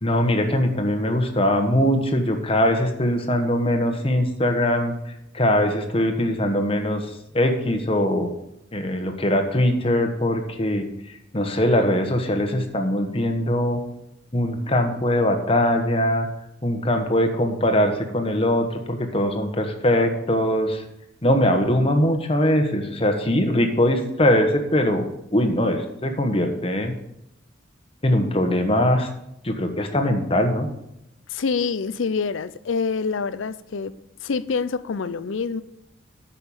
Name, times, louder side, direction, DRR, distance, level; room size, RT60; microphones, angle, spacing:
voice 1, 0.0-8.3 8.7-10.9 11.3-13.8 14.3-16.3 16.6-20.8 21.2-25.1 25.3-26.9 28.0-29.1 29.4-30.7, left 1 dB, 30° left, 1.2 m, -21 dB
voice 2, 31.3-33.9 34.2-35.6, left 5 dB, 85° left, 0.5 m, -26 dB
9.2 x 5.8 x 7.1 m
head